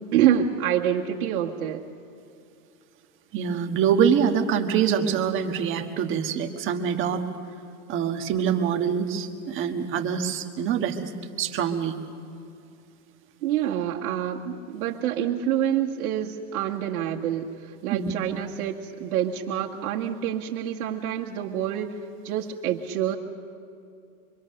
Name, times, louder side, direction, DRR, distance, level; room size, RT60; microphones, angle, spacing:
voice 1, 0.1-1.8 13.4-22.0 22.2-23.2, right 10 dB, 75° right, -2 dB, 2.0 m, -27 dB
voice 2, 3.3-7.2 7.9-11.1 11.4-12.0 17.9-18.1, right 7 dB, 30° right, 5 dB, 1.5 m, -25 dB
25.5 x 23.0 x 6.7 m, 2.5 s
supercardioid pair, 150°, 43 cm